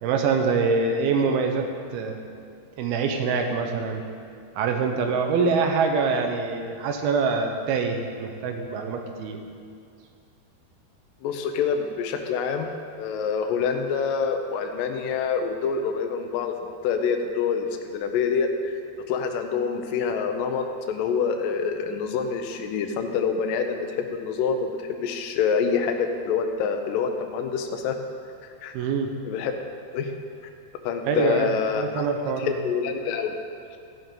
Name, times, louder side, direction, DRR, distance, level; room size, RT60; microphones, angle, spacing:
voice 1, 0.0-2.2 2.8-4.0 4.6-9.4 28.7-29.1 31.0-32.6, right 4 dB, 75° right, 4 dB, 2.7 m, -25 dB
voice 2, 11.2-12.7 13.0-16.5 16.8-18.8 19.1-28.0 28.6-28.8 29.2-29.6 29.9-30.1 30.8-32.1 32.4-33.4, left 6 dB, 80° left, 4 dB, 2.0 m, -26 dB
14.0 x 10.5 x 3.8 m, 2.5 s
omnidirectional pair, 4.7 m